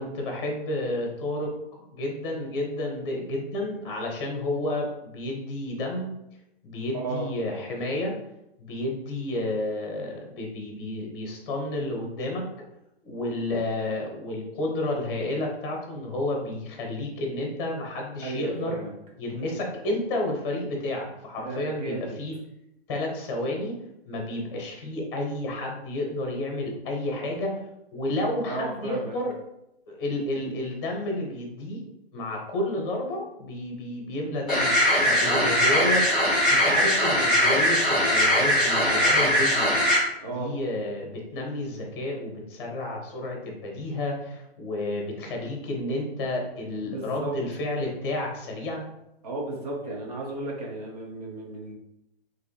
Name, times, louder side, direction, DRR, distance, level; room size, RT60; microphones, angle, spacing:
voice 1, 0.0-6.1 6.6-8.2 8.6-12.4 13.0-18.8 19.2-22.3 22.9-23.8 24.0-27.6 27.9-29.3 29.9-31.8 32.1-34.7 35.0-36.0 36.5-39.7 40.2-48.8, left 1 dB, 25° left, 0 dB, 1.1 m, -31 dB
voice 2, 18.2-18.9 21.4-22.2 28.4-29.1 35.3-36.0 40.2-40.5 46.9-47.3 49.2-51.7, right 3 dB, 35° right, -1 dB, 1.1 m, -34 dB
sound 1, 34.5-40.0, equal, ahead, 1.5 m, -21 dB
4.8 x 3.2 x 3.2 m, 0.84 s
hypercardioid pair, 160°, 32 cm